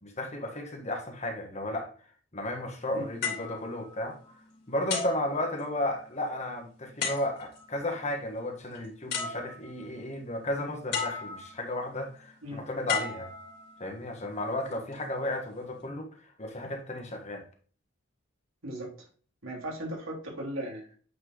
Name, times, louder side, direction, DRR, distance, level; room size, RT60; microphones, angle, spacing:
voice 1, 0.0-1.9 2.3-4.1 4.7-13.3 13.8-16.1 16.4-17.4, left 1 dB, 35° left, 1.6 m, -34 dB
sound 1, 3.2-4.4 4.9-6.1 7.0-7.7 8.7-8.8 9.1-9.9 10.9-11.7 12.9-14.0 14.7-15.0, left 5 dB, 55° left, 3.1 m, -35 dB
voice 2, 18.6-18.9 19.4-20.9, right 1 dB, 85° right, 3.4 m, -37 dB
8.6 x 4.6 x 3.2 m
head